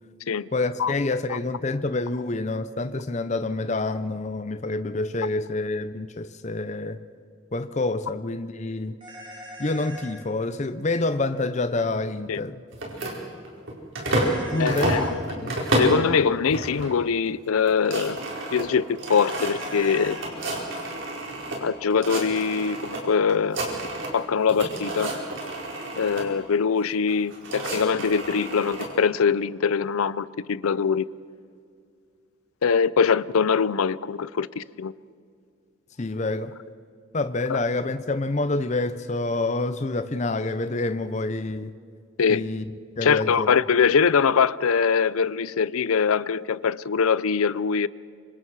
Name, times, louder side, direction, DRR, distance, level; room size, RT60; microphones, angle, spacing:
voice 1, 0.5-7.0 7.5-8.9 9.6-12.6 14.5-15.1 15.4-15.5 36.0-36.6 37.1-41.7 42.3-42.6 43.0-43.6, left 2 dB, 35° left, 0.6 m, -27 dB
sound 1, 9.0-10.1 14.0-15.2 19.0-20.2, equal, 25° right, 3.7 m, -41 dB
sound 2, 12.7-14.4 14.7-16.1 16.5-16.9 17.3-17.4 17.6-21.6 21.9-23.0 23.3-24.2 24.5-26.3 27.1-28.9, right 1 dB, 60° right, 4.7 m, -29 dB
voice 2, 14.6-15.2 15.8-18.2 18.5-20.2 21.6-23.6 24.1-25.1 26.0-31.1 32.6-34.9 37.5-37.6 42.2-42.4 43.0-47.9, left 6 dB, 85° left, 0.5 m, -23 dB
26.0 x 25.5 x 4.8 m
head